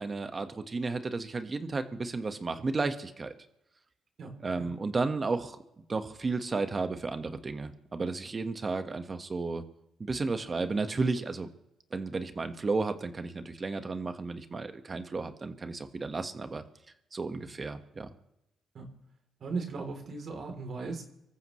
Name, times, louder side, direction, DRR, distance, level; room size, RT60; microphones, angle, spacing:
voice 1, 0.0-3.3 4.4-5.6 5.9-9.6 10.0-11.5 11.9-16.6 17.1-18.1, right 3 dB, 30° right, 8 dB, 1.5 m, -33 dB
voice 2, 4.2-4.7 18.7-18.9 19.4-21.0, right 4 dB, 55° right, 3 dB, 3.4 m, -37 dB
25.0 x 14.0 x 3.2 m, 0.85 s
cardioid pair, 90°, 0 cm